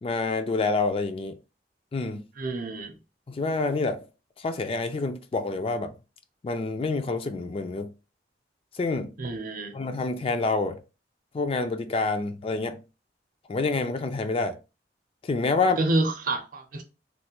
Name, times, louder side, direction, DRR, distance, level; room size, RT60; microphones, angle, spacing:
voice 1, 0.0-1.4 1.9-2.2 3.3-4.1 4.4-5.9 6.4-7.9 8.7-9.1 9.7-10.8 11.3-12.8 13.5-14.6 15.2-15.8, left 3 dB, 30° left, 0.3 m, -27 dB
voice 2, 2.4-2.9 9.2-9.8 15.8-16.8, right 2 dB, 50° right, 0.6 m, -28 dB
3.2 x 2.1 x 2.9 m
head